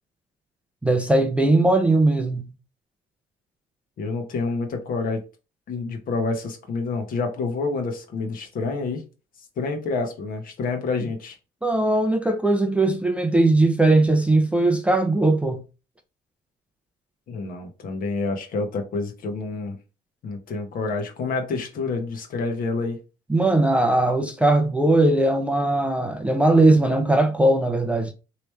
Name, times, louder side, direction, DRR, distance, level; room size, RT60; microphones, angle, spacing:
voice 1, 0.8-2.5 11.6-15.6 23.3-28.1, right 2 dB, 5° right, 0.4 m, -19 dB
voice 2, 4.0-5.2 5.7-9.0 9.6-11.4 17.3-19.8 20.2-23.0, left 3 dB, 55° left, 1.1 m, -28 dB
3.2 x 3.0 x 3.2 m
cardioid pair, 110°, 17 cm